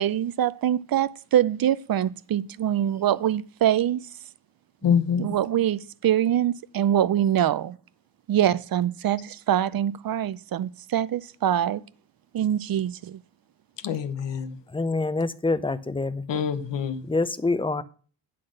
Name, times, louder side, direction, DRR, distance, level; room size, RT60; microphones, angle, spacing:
voice 1, 0.0-4.1 5.2-7.8 8.3-11.8 12.3-13.2, right 11 dB, 55° right, 0.5 m, -24 dB
voice 2, 4.8-5.3 13.8-14.6 16.3-17.1, left 7 dB, 70° left, 1.0 m, -25 dB
voice 3, 14.7-16.2 17.1-17.8, left 3 dB, 10° left, 0.5 m, -26 dB
9.9 x 4.1 x 6.3 m
wide cardioid pair, 115°, 44 cm